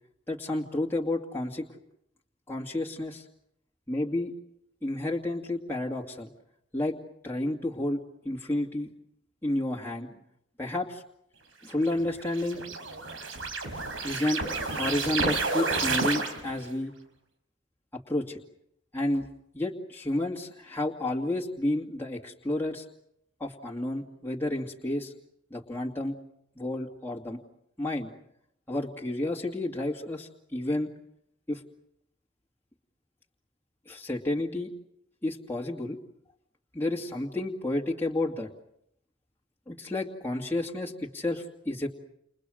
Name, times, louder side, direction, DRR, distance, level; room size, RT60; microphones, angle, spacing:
voice 1, 0.3-1.7 2.5-3.2 3.9-4.3 4.8-6.3 6.7-7.0 7.2-8.9 9.4-10.1 10.6-11.0 11.6-12.6 14.0-14.4 14.7-16.9 17.9-18.4 18.9-19.3 19.5-22.8 23.4-25.1 25.5-26.2 26.6-27.4 27.8-28.1 28.7-30.9 31.5-31.6 33.9-34.7 35.2-36.0 36.7-38.5 39.7-41.9, left 1 dB, 10° left, -2 dB, 2.4 m, -31 dB
sound 1, 11.7-16.7, right 3 dB, 85° right, 4.9 m, -30 dB
30.0 x 29.5 x 6.5 m, 0.75 s
head